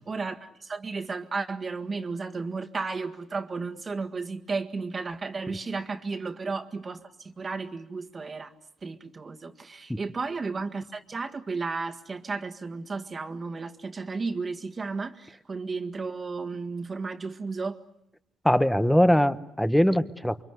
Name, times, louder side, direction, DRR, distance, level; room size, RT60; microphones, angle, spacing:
voice 1, 0.0-8.5 8.8-17.8, right 4 dB, 35° right, 6 dB, 1.8 m, -33 dB
voice 2, 18.4-20.4, equal, 5° left, 13 dB, 1.1 m, -22 dB
28.5 x 24.0 x 8.1 m, 0.79 s
cardioid pair, 90°, 0 cm